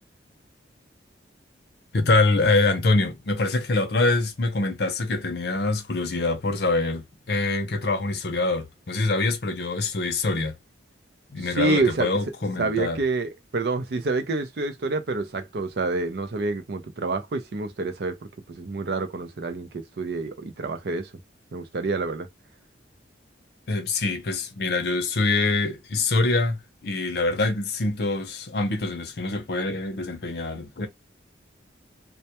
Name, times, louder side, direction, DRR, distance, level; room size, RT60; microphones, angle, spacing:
voice 1, 1.9-10.5 11.3-13.0 23.7-30.9, left 3 dB, 55° left, 0.6 m, -25 dB
voice 2, 11.4-12.1 12.6-18.2 18.5-21.1 21.5-22.3, right 3 dB, 60° right, 0.5 m, -27 dB
2.2 x 2.1 x 2.8 m
head